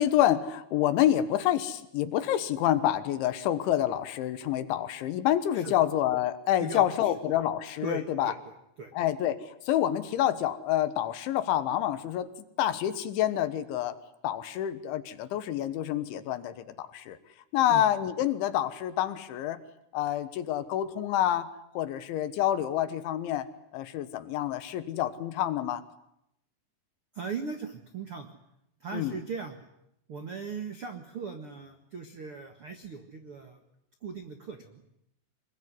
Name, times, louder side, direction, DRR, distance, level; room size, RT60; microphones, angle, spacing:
voice 1, 0.0-8.3 9.0-12.3 12.6-14.0 14.2-17.2 17.5-19.6 19.9-21.5 21.8-25.8 28.9-29.2, left 12 dB, 75° left, 12 dB, 3.6 m, -28 dB
voice 2, 6.6-7.1 7.8-8.9 17.7-17.9 27.1-28.3 28.8-29.6 30.1-33.6 34.0-34.8, right 5 dB, 65° right, 6 dB, 1.3 m, -39 dB
25.0 x 22.0 x 9.8 m, 0.80 s
omnidirectional pair, 5.5 m